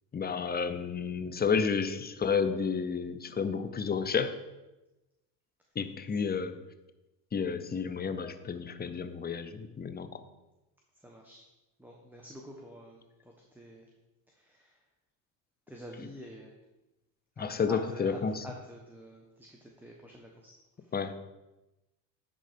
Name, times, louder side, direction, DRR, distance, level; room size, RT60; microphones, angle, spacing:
voice 1, 0.1-4.3 5.8-6.5 7.3-10.2 17.4-18.4 20.9-21.1, left 6 dB, 20° left, 11 dB, 0.7 m, -31 dB
voice 2, 10.9-11.4 11.8-13.9 14.3-14.8 15.7-16.6 17.4-20.5 20.8-20.9, equal, 5° right, -1 dB, 1.1 m, -48 dB
10.5 x 3.9 x 5.1 m, 1.0 s
supercardioid pair, 80°, 49 cm